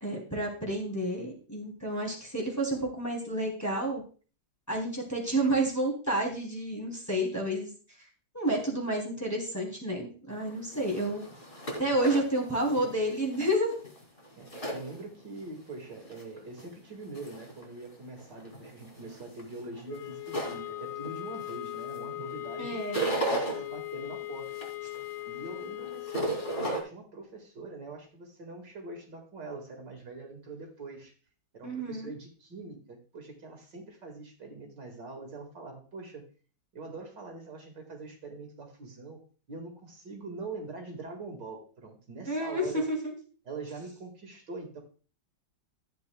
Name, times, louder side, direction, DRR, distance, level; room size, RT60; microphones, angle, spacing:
voice 1, 0.0-4.0 4.7-7.7 8.3-11.3 11.8-13.7 22.6-23.1 31.6-32.1 42.3-43.1, right 1 dB, 10° left, -1 dB, 2.9 m, -30 dB
sound 1, 10.4-15.4 15.8-16.7 17.1-17.7 18.2-22.0 22.3-23.6 24.0-26.8, right 2 dB, 25° left, 2.8 m, -35 dB
voice 2, 14.4-22.8 23.3-24.6 25.3-31.1 31.5-36.3 36.7-39.2 39.5-42.9 43.4-44.8, right 3 dB, 60° right, 2 dB, 2.5 m, -43 dB
sound 2, 19.9-26.8, left 16 dB, 75° left, 0.9 m, -39 dB
13.5 x 8.6 x 2.3 m, 0.39 s
omnidirectional pair, 2.2 m